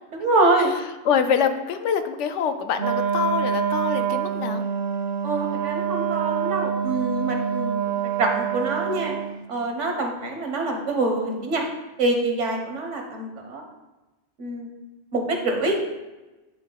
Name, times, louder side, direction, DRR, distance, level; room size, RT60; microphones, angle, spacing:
voice 1, 0.1-0.7 5.2-7.8 8.2-9.2 9.5-11.6 12.0-13.6 14.4-14.7 15.1-16.0, right 2 dB, 90° right, 2 dB, 1.4 m, -25 dB
voice 2, 1.1-4.6, left 7 dB, 80° left, 8 dB, 0.9 m, -25 dB
Wind instrument woodwind instrument, 2.8-9.4, right 8 dB, 70° right, 0.8 m, -26 dB
9.4 x 3.6 x 3.9 m, 1.1 s
omnidirectional pair, 1.2 m